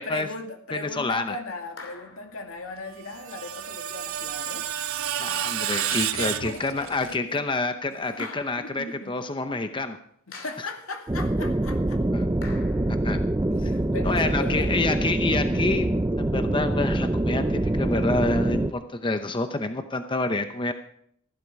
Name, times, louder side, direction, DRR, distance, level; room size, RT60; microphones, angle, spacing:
voice 1, 0.0-4.7 5.9-7.4 8.0-8.3 8.6-9.1 10.4-12.0 13.5-14.7, left 2 dB, 85° left, 3 dB, 2.3 m, -38 dB
voice 2, 0.7-1.4 5.2-10.0 10.6-10.7 12.1-12.3 13.0-13.2 13.6-13.7 14.0-15.9 16.2-20.7, left 2 dB, 25° left, 8 dB, 0.7 m, -28 dB
sound 1, 1.8-2.3 3.9-4.0 5.7-6.4 8.2-8.9 10.3-10.9 12.4-13.0, left 4 dB, 65° left, 2.9 m, -43 dB
Screech, 2.9-7.2, right 10 dB, 80° right, 0.7 m, -30 dB
sound 2, 11.1-18.7, right 1 dB, 15° right, 0.5 m, -25 dB
15.0 x 12.0 x 4.8 m, 0.66 s
head